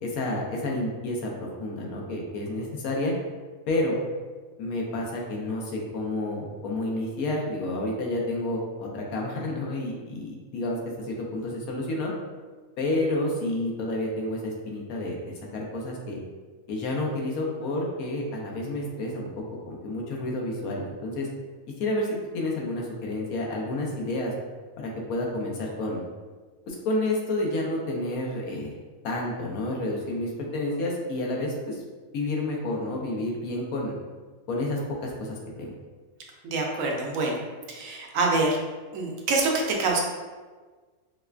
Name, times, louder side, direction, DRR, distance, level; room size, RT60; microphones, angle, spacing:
voice 1, 0.0-3.1 3.7-4.0 4.6-12.1 12.8-16.2 16.7-21.3 21.8-24.3 24.8-26.0 26.7-28.7 29.0-31.8 32.1-33.9 34.5-35.7, left 1 dB, 80° left, -1 dB, 1.2 m, -30 dB
voice 2, 36.4-37.4 37.7-38.6 38.9-40.0, right 3 dB, 75° right, 0 dB, 1.0 m, -25 dB
4.8 x 2.2 x 2.3 m, 1.4 s
omnidirectional pair, 1.5 m